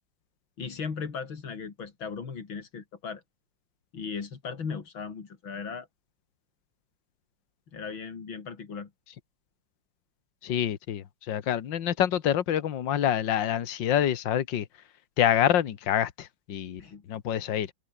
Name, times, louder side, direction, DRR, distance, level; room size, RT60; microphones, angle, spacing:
voice 1, 0.6-3.2 3.9-5.9 7.7-8.9 16.8-17.0, left 5 dB, 90° left, 3.6 m, -37 dB
voice 2, 10.4-14.7 15.2-16.8 17.1-17.7, left 10 dB, 70° left, 2.0 m, -26 dB
omnidirectional pair, 2.1 m